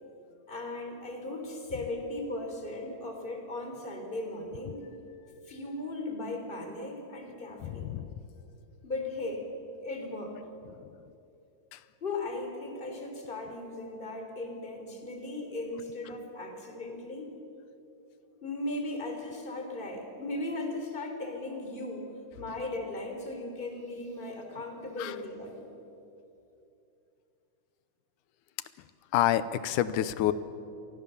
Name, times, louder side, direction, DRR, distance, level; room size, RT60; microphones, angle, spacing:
voice 1, 0.5-4.9 5.5-7.9 8.8-9.5 9.8-10.4 12.0-17.3 18.4-25.7, left 2 dB, 15° left, 3 dB, 3.5 m, -37 dB
voice 2, 7.6-8.1 10.8-10.9 11.7-11.8 25.0-25.1 29.1-30.3, left 12 dB, 85° left, 14 dB, 2.3 m, -28 dB
29.5 x 24.0 x 7.0 m, 2.8 s
omnidirectional pair, 3.5 m